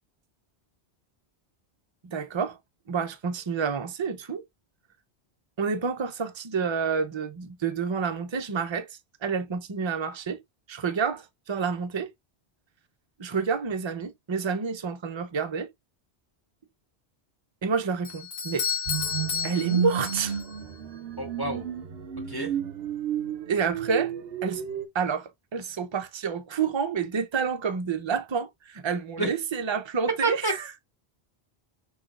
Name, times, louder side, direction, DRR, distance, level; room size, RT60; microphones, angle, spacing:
voice 1, 2.0-2.6 2.9-4.4 5.6-10.4 10.7-12.1 13.2-15.7 17.6-18.7 19.4-20.4 23.5-24.1 24.4-24.6 24.9-30.6, right 5 dB, 35° right, 0.5 m, -29 dB
Bell / Doorbell, 18.0-19.8, left 5 dB, 50° left, 1.3 m, -44 dB
Doorbell, 18.6-20.6, left 7 dB, 75° left, 1.1 m, -31 dB
sound 1, 18.9-24.9, right 8 dB, 70° right, 0.8 m, -31 dB
voice 2, 21.2-21.7 22.3-22.6 29.2-29.3 30.2-30.5, right 2 dB, 20° left, 1.3 m, -28 dB
6.0 x 3.1 x 2.4 m
omnidirectional pair, 1.1 m